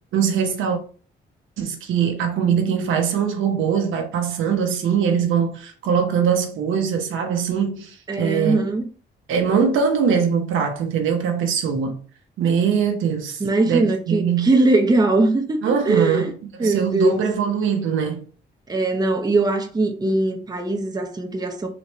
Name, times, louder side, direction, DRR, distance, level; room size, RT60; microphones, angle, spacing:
voice 1, 0.1-0.8 1.6-8.6 9.3-12.0 12.4-13.4 13.7-14.5 15.6-16.3 16.6-18.2, right 7 dB, 80° right, 1.0 m, -22 dB
voice 2, 8.1-8.8 13.4-16.3 16.6-17.2 18.7-21.7, right 2 dB, 20° right, 0.8 m, -21 dB
4.0 x 3.2 x 3.1 m
cardioid pair, 90°, 20 cm